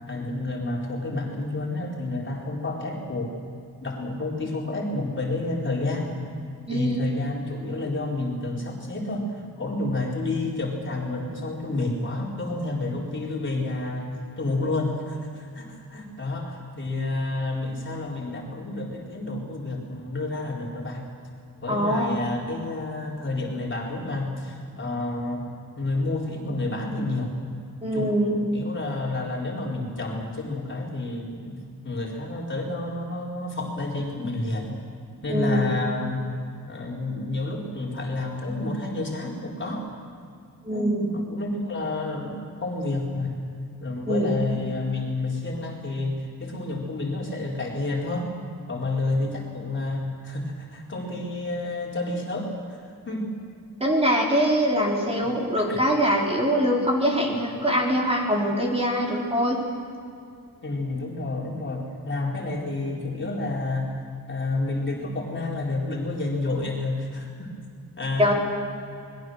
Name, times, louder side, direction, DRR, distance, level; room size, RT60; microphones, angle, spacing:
voice 1, 0.1-3.3 3.8-6.2 6.7-9.3 9.6-21.0 21.6-25.5 25.7-27.3 27.9-34.7 35.2-36.3 36.7-39.9 40.7-43.4 43.8-48.3 48.7-53.3 55.2-55.3 55.6-55.8 60.6-64.0 64.3-67.5 68.0-68.3, left 2 dB, 35° left, -2 dB, 4.4 m, -30 dB
voice 2, 6.7-7.0 21.7-22.2 27.8-28.4 35.3-35.6 40.6-41.1 44.1-44.3 53.8-59.6 68.2-68.3, equal, 15° right, -2 dB, 4.3 m, -23 dB
29.0 x 22.0 x 6.5 m, 2.4 s
wide cardioid pair, 155°, 35 cm